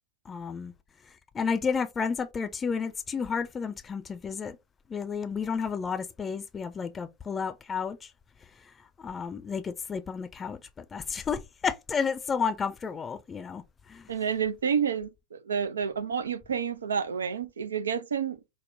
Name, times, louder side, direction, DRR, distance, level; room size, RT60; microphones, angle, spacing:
voice 1, 0.3-0.7 1.3-4.6 4.9-8.0 9.0-13.6 13.9-14.0, left 6 dB, 20° left, 0.3 m, -31 dB
voice 2, 14.1-18.4, right 7 dB, 70° right, 0.3 m, -29 dB
3.4 x 2.0 x 2.5 m
figure-of-eight pair, 90°, 0 cm